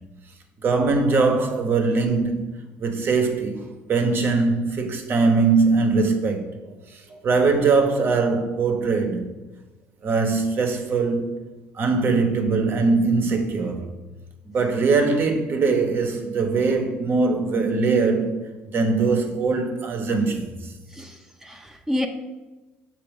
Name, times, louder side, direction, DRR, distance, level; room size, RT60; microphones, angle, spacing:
voice 1, 0.6-2.5 2.8-6.5 6.9-9.3 10.0-11.3 11.7-13.8 14.5-18.3 18.7-20.5, right 4 dB, 50° right, 1.0 m, -21 dB
voice 2, 20.9-22.1, left 1 dB, 10° right, 0.6 m, -29 dB
7.0 x 2.8 x 5.3 m
supercardioid pair, 85°, 5 cm